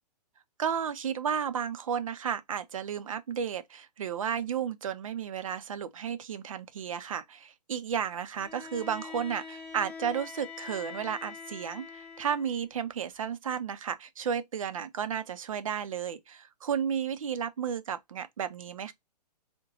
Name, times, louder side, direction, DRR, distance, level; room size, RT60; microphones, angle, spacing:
voice 1, 0.6-18.9, right 8 dB, 55° right, 0.5 m, -33 dB
Bowed string instrument, 8.3-12.6, left 6 dB, 5° left, 0.7 m, -44 dB
3.9 x 2.2 x 3.9 m
figure-of-eight pair, 120°, 21 cm